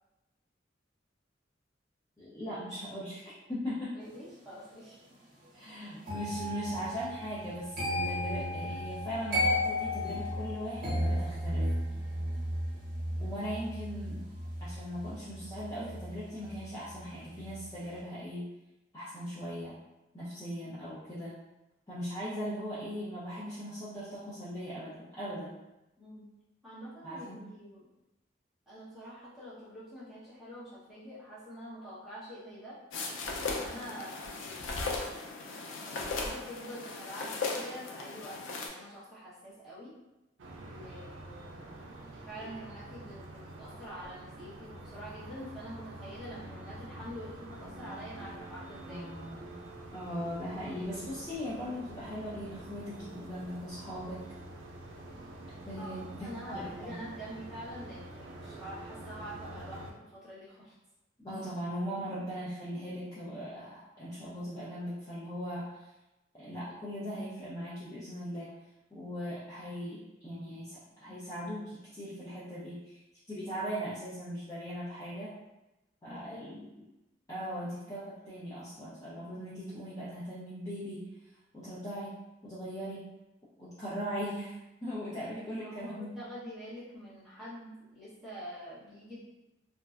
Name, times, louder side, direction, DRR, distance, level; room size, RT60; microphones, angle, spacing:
voice 1, 2.2-3.9 5.5-11.6 13.2-14.3 14.6-18.4 18.9-19.7 20.1-21.3 21.9-25.5 27.0-27.4 48.9-49.6 49.9-54.2 55.7-56.9 61.2-65.8 66.4-68.5 68.9-73.0 73.3-75.3 76.0-76.6 77.3-81.1 81.5-82.1 82.4-83.1 83.6-84.6 84.8-86.1, equal, 15° left, -11 dB, 0.5 m, -39 dB
voice 2, 3.9-5.0 26.0-26.3 26.6-27.9 28.7-32.8 33.3-35.2 35.8-39.9 40.6-41.6 42.3-49.1 55.8-56.0 56.2-60.7 76.1-76.5 85.6-89.2, equal, ahead, -11 dB, 0.8 m, -46 dB
sound 1, 6.0-17.0 17.3-17.7, left 1 dB, 50° right, 0.9 m, -34 dB
sound 2, 32.9-38.7, left 3 dB, 90° left, 0.4 m, -37 dB
sound 3, 40.4-59.9, right 1 dB, 85° right, 0.4 m, -47 dB
2.5 x 2.1 x 2.3 m, 0.98 s
head